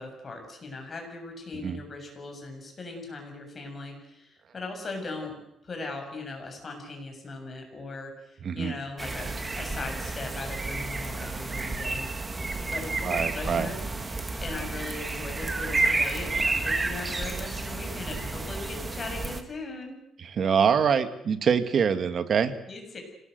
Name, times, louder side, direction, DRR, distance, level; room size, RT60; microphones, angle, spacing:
voice 1, 0.0-5.4 5.6-12.1 12.6-13.8 14.4-20.0 22.7-23.0, left 3 dB, 35° left, 3 dB, 7.3 m, -39 dB
voice 2, 8.4-8.7 13.0-13.7 20.2-22.5, right 7 dB, 50° right, 9 dB, 1.9 m, -24 dB
sound 1, 9.0-19.4, right 3 dB, 20° right, 2.1 m, -31 dB
26.0 x 19.0 x 8.0 m, 0.80 s
cardioid pair, 130°, 0 cm